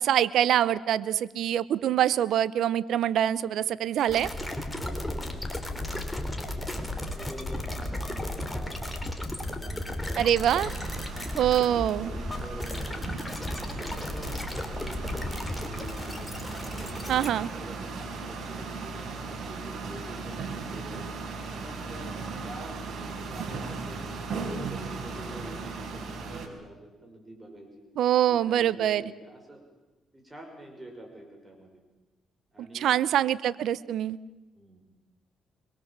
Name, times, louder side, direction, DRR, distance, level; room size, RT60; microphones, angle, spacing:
voice 1, 0.0-4.3 10.2-10.7 11.4-12.1 17.1-17.5 28.0-29.0 32.6-34.2, right 11 dB, 75° right, 18 dB, 0.8 m, -24 dB
sound 1, 4.1-17.3, left 1 dB, 10° left, 3.7 m, -34 dB
voice 2, 4.7-5.9 6.2-10.7 11.0-11.3 11.6-13.3 13.6-16.3 16.6-20.3 20.7-21.1 21.4-22.1 22.4-24.2 24.5-27.9 28.3-29.6 30.1-31.7 32.5-33.0 34.5-34.8, right 1 dB, 15° right, 2 dB, 6.3 m, -46 dB
sound 2, 10.6-26.5, right 4 dB, 55° right, 4.5 m, -37 dB
25.0 x 22.5 x 7.5 m, 1.1 s
cardioid pair, 90°, 0 cm